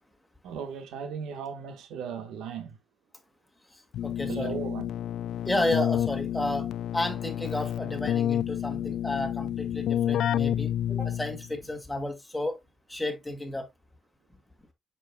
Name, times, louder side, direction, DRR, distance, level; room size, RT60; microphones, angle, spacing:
voice 1, 0.4-2.8 4.3-4.9, right 6 dB, 85° right, 1.3 m, -36 dB
voice 2, 3.7-4.5 5.5-12.6 12.9-13.6, left 1 dB, 10° left, 2.1 m, -32 dB
Keyboard (musical), 3.9-11.5, left 11 dB, 75° left, 0.3 m, -29 dB
7.1 x 6.0 x 2.2 m
cardioid pair, 90°, 0 cm